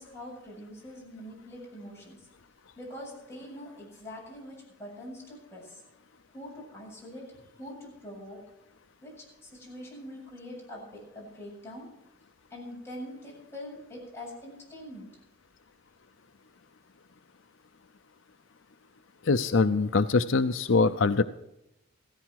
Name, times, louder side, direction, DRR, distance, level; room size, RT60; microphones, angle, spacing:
voice 1, 0.0-2.3 2.8-5.8 6.3-8.4 9.0-11.9 12.5-15.1, left 1 dB, 15° left, -4 dB, 7.7 m, -44 dB
voice 2, 19.2-21.2, left 4 dB, 75° left, 10 dB, 0.6 m, -23 dB
16.0 x 14.5 x 4.8 m, 0.84 s
head